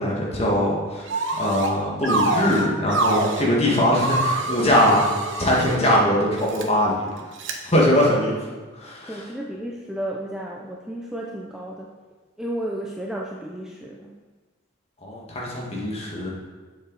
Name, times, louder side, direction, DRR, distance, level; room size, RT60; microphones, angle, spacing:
voice 1, 0.0-5.1 5.4-7.1 7.6-8.4 8.7-9.2 15.0-16.3, left 1 dB, 30° left, -4 dB, 1.9 m, -21 dB
sound 1, 1.1-1.7 2.0-3.5 3.9-5.8 6.4-6.6 7.4-7.5, right 2 dB, 70° right, 1.0 m, -25 dB
voice 2, 9.1-11.9 12.4-14.1, right 1 dB, 5° right, -2 dB, 0.5 m, -32 dB
7.7 x 7.4 x 4.1 m, 1.4 s
head